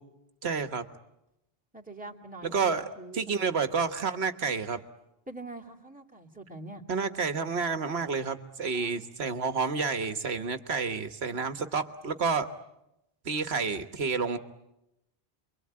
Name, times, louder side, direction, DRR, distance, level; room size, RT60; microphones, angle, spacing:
voice 1, 0.4-0.9 2.4-2.9 3.1-4.8 6.9-12.5 13.2-14.4, right 5 dB, 80° right, 10 dB, 1.6 m, -29 dB
voice 2, 1.7-3.7 5.3-6.8 8.7-9.0, right 2 dB, 10° right, 0 dB, 2.6 m, -44 dB
28.0 x 23.5 x 8.8 m, 0.87 s
omnidirectional pair, 1.1 m